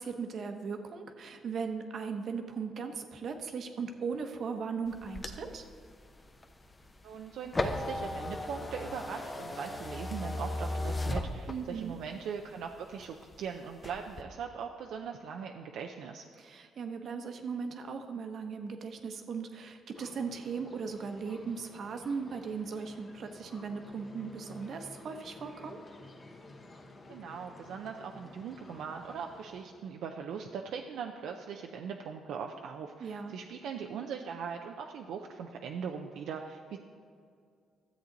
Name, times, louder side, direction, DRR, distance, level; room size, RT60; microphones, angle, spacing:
voice 1, 0.0-5.6 11.5-11.9 16.4-25.8 33.0-33.3, right 5 dB, 60° right, 6 dB, 1.0 m, -38 dB
sound 1, 4.9-11.9 12.4-13.4 13.7-14.2, left 2 dB, 25° left, 0.8 m, -36 dB
voice 2, 7.0-16.2 27.1-36.8, right 6 dB, 80° right, 3 dB, 0.5 m, -40 dB
sound 2, 19.9-30.0, left 2 dB, 40° left, 1.6 m, -52 dB
13.5 x 7.9 x 4.0 m, 2.3 s
cardioid pair, 90°, 0 cm